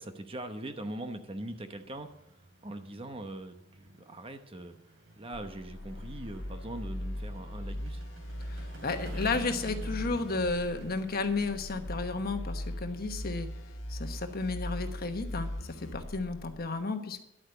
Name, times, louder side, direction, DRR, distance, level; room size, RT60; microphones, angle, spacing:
voice 1, 0.0-2.1 2.6-4.7 5.2-8.0, right 1 dB, 30° right, 7 dB, 0.9 m, -41 dB
sound 1, 1.3-15.2, right 2 dB, 70° right, 2.9 m, -52 dB
sound 2, 5.3-16.7, left 1 dB, 90° left, 1.4 m, -39 dB
voice 2, 8.5-13.5 13.9-17.2, left 3 dB, 50° left, 7 dB, 1.2 m, -33 dB
11.0 x 8.8 x 6.7 m, 0.83 s
head